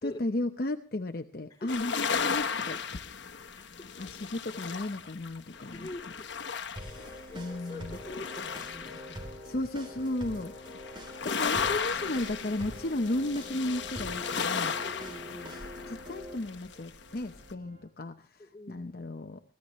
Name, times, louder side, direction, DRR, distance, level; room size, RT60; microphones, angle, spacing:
voice 1, 0.0-3.1 3.7-5.9 7.3-8.0 9.4-10.5 11.2-14.8 15.9-19.4, left 1 dB, 50° left, 7 dB, 0.8 m, -34 dB
sound 1, 1.7-9.6 10.1-17.5, left 6 dB, 75° left, 1.2 m, -35 dB
voice 2, 3.5-3.9 5.7-6.3 6.9-9.4 14.8-15.6 18.4-18.8, left 2 dB, 20° left, 1 dB, 3.4 m, -45 dB
sound 2, 6.8-16.4, equal, 25° right, 3.4 m, -44 dB
sound 3, 7.0-17.8, right 1 dB, 60° right, 7.6 m, -57 dB
24.0 x 16.0 x 3.1 m, 0.36 s
head